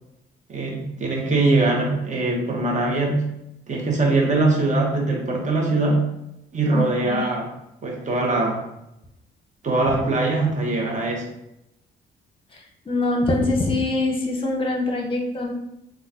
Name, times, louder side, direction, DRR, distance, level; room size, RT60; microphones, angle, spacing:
voice 1, 0.5-3.2 3.7-6.1 6.5-7.5 7.8-8.7 9.6-11.3, right 2 dB, 40° right, -1 dB, 0.9 m, -22 dB
voice 2, 6.7-7.3 9.9-10.0 12.5-15.5, left 2 dB, 25° left, 0 dB, 0.8 m, -24 dB
3.7 x 2.3 x 2.8 m, 0.85 s
cardioid pair, 90°, 20 cm